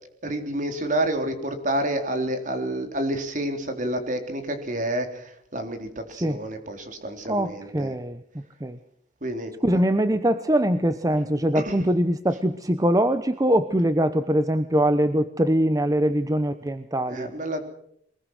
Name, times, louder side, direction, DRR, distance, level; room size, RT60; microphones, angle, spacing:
voice 1, 0.2-7.9 9.2-9.8 11.5-11.8 17.1-17.6, right 1 dB, 45° right, 6 dB, 3.8 m, -29 dB
voice 2, 7.3-8.2 8.6-8.8 9.6-17.3, right 1 dB, 20° right, 11 dB, 0.9 m, -22 dB
23.0 x 21.5 x 6.3 m, 0.69 s
head